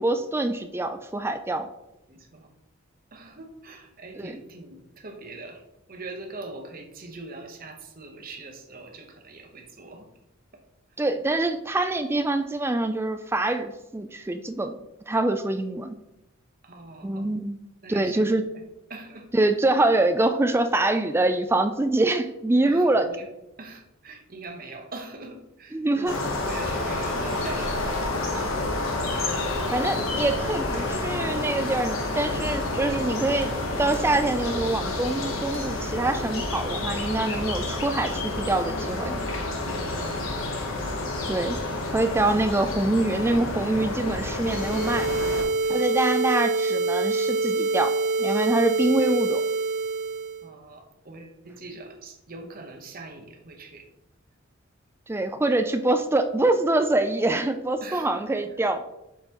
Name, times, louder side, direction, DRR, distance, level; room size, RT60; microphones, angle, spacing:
voice 1, 0.0-1.7 4.1-4.4 11.0-14.8 15.1-16.0 17.0-17.6 17.9-18.5 19.3-23.1 25.7-26.2 29.7-33.5 33.8-39.2 41.3-41.6 41.9-45.1 45.7-47.9 48.2-49.4 55.1-58.8, right 2 dB, 10° right, 0.3 m, -25 dB
voice 2, 3.1-4.8 5.0-5.6 5.9-10.1 16.7-17.2 17.8-18.1 18.9-19.3 22.7-22.8 23.6-28.5 39.8-40.2 45.6-45.9 50.4-53.8 57.8-58.2, right 2 dB, 45° right, 1.1 m, -42 dB
sound 1, 26.1-45.4, left 2 dB, 80° left, 1.2 m, -29 dB
sound 2, 44.3-50.4, right 3 dB, 70° right, 0.9 m, -26 dB
7.5 x 5.6 x 3.0 m
head